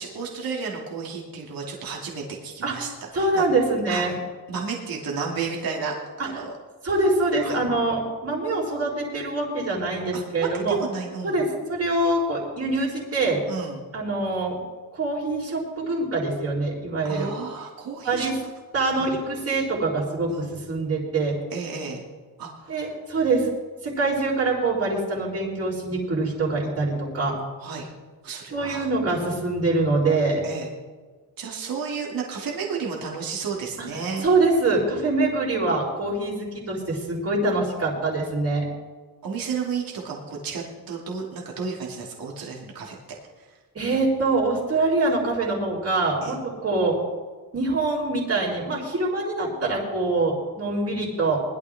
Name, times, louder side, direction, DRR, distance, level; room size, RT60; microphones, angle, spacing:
voice 1, 0.0-3.4 3.9-4.0 4.5-5.9 6.2-6.5 7.4-7.6 10.1-10.2 10.7-11.4 13.5-13.8 17.0-18.3 18.9-19.1 20.3-20.5 21.5-22.0 22.4-22.9 27.6-27.9 28.2-28.8 30.4-30.7 31.4-34.2 39.2-43.0 46.2-46.4, right 5 dB, 65° right, -2 dB, 2.8 m, -32 dB
voice 2, 3.1-4.1 6.2-6.3 6.8-10.8 11.2-13.4 13.9-14.6 14.9-17.3 17.9-18.3 18.7-21.4 22.7-23.5 23.8-27.4 28.5-30.4 33.8-33.9 34.2-38.7 43.7-47.0 47.5-51.4, right 2 dB, 40° right, -4 dB, 4.2 m, -24 dB
20.5 x 12.0 x 3.7 m, 1.4 s
cardioid pair, 115°, 38 cm